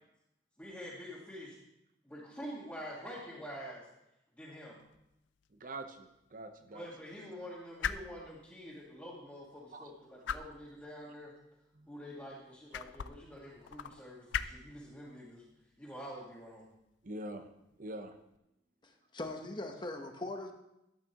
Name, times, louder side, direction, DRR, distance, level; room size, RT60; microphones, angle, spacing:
voice 1, 0.6-1.6 2.0-3.9 4.4-4.8 6.7-11.3 11.9-15.4 15.8-16.7, equal, 10° left, -8 dB, 1.8 m, -47 dB
sound 1, 4.8-18.4, left 8 dB, 75° left, 0.4 m, -45 dB
voice 2, 5.5-6.9 9.7-9.9 11.7-11.9 17.0-17.5 17.8-18.1, right 1 dB, 45° right, 8 dB, 0.8 m, -44 dB
voice 3, 18.8-20.5, left 2 dB, 25° left, 4 dB, 1.0 m, -41 dB
12.5 x 8.7 x 3.0 m, 0.86 s
head